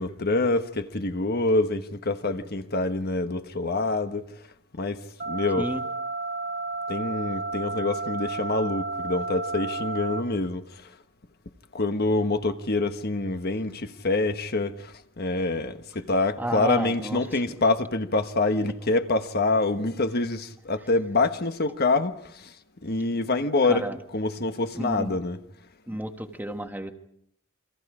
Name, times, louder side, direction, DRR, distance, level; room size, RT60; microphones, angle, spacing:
voice 1, 0.0-4.3 4.7-5.7 6.9-10.9 11.7-22.5 22.8-23.9 24.1-25.4, left 2 dB, 50° left, 1.3 m, -26 dB
sound 1, 5.2-10.2, right 3 dB, 50° right, 2.1 m, -32 dB
voice 2, 16.4-17.4 23.7-24.0 24.8-25.1 25.9-26.9, right 1 dB, 10° right, 1.5 m, -31 dB
29.0 x 25.0 x 5.0 m
head